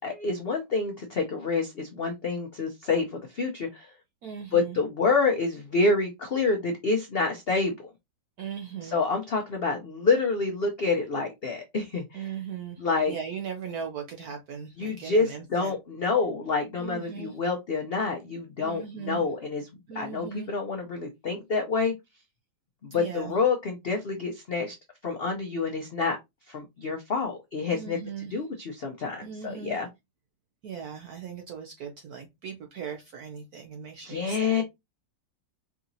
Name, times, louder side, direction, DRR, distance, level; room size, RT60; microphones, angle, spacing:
voice 1, 0.0-3.9 4.5-7.9 8.8-12.4 12.8-13.1 14.8-19.7 19.9-21.9 22.8-24.8 25.0-26.2 26.5-29.9 34.0-34.6, left 4 dB, 65° left, 0.5 m, -28 dB
voice 2, 4.2-4.8 8.4-9.0 12.1-12.8 13.1-15.7 16.8-17.3 18.6-19.3 19.9-20.5 22.9-23.3 27.7-28.4 29.2-29.8 30.6-34.6, right 7 dB, 65° right, 1.1 m, -38 dB
4.8 x 2.9 x 2.6 m
omnidirectional pair, 1.9 m